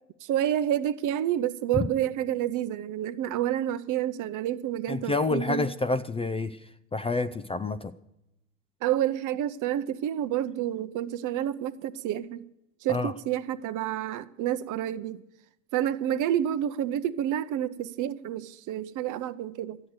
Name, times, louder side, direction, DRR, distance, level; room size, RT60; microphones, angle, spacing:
voice 1, 0.2-5.7 8.8-12.4 12.8-15.2 15.7-19.8, right 11 dB, 50° right, 0.7 m, -29 dB
voice 2, 4.9-6.6 6.9-7.9 12.9-13.1, left 3 dB, 15° left, 0.4 m, -28 dB
13.0 x 8.6 x 7.8 m
hypercardioid pair, 65°, 40 cm